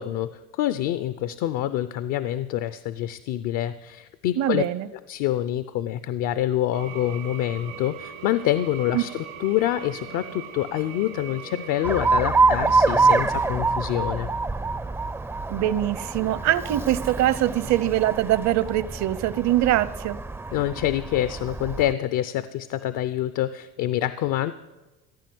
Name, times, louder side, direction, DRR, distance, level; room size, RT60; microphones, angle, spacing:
voice 1, 0.0-4.6 4.9-14.3 20.5-24.5, left 12 dB, 70° left, 13 dB, 0.7 m, -26 dB
voice 2, 4.4-4.9 8.9-9.0 15.5-20.2, right 13 dB, 55° right, 17 dB, 0.8 m, -23 dB
sound 1, 6.7-12.1, right 7 dB, 85° right, 2.3 m, -40 dB
Alarm, 11.8-21.9, right 3 dB, 10° right, 0.4 m, -25 dB
15.5 x 9.2 x 7.8 m, 1.1 s
supercardioid pair, 100°, 32 cm